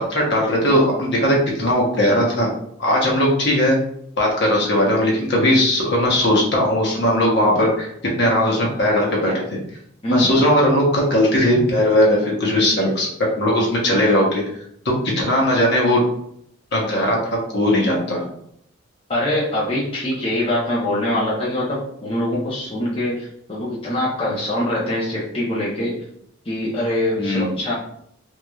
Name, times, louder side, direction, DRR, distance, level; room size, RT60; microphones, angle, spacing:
voice 1, 0.1-2.5 2.8-3.8 4.2-7.9 8.2-9.4 10.1-13.1 13.4-14.4 15.2-16.0 16.7-18.2 27.2-27.5, left 1 dB, 55° left, -2 dB, 1.1 m, -18 dB
voice 2, 19.1-25.9 26.5-27.7, left 1 dB, 25° left, -7 dB, 0.8 m, -23 dB
3.6 x 3.1 x 2.4 m, 0.70 s
head